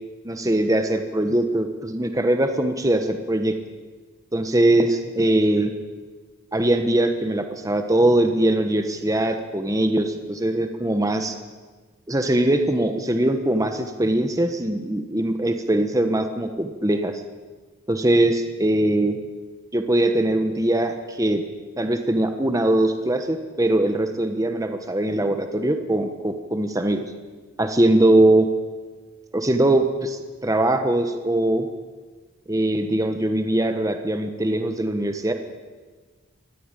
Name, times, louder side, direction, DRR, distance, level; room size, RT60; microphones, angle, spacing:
voice 1, 0.2-3.5 4.3-5.7 6.5-11.3 12.1-17.2 17.9-19.2 19.7-21.4 21.8-27.0 27.6-28.5 29.3-31.7 32.5-35.3, right 1 dB, 15° right, 6 dB, 1.2 m, -21 dB
21.5 x 14.0 x 9.1 m, 1.4 s
head